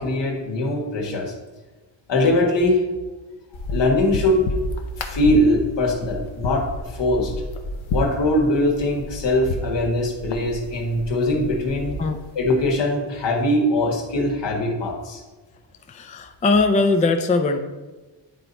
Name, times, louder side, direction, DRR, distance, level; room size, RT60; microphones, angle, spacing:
voice 1, 0.0-1.3 2.1-2.8 3.7-4.5 5.0-7.3 7.9-12.0 12.3-15.2, left 1 dB, 65° left, 0 dB, 1.6 m, -21 dB
sound 1, 3.5-12.7, left 2 dB, 80° left, 0.9 m, -31 dB
voice 2, 15.9-17.6, left 3 dB, 20° left, 6 dB, 0.4 m, -20 dB
9.9 x 4.1 x 4.3 m, 1.2 s
cardioid pair, 120°, 46 cm